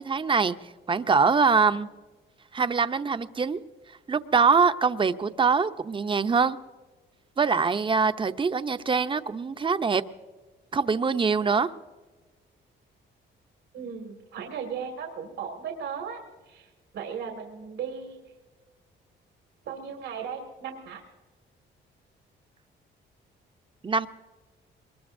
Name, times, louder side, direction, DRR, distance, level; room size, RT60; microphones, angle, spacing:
voice 1, 0.0-1.9 2.5-3.6 4.1-6.6 7.4-10.0 10.7-11.7 23.8-24.1, right 5 dB, 25° right, 10 dB, 0.7 m, -24 dB
voice 2, 13.7-16.2 16.5-18.2 19.7-21.0, right 7 dB, 90° right, 1 dB, 2.2 m, -36 dB
22.5 x 21.0 x 2.6 m, 1.3 s
cardioid pair, 90°, 20 cm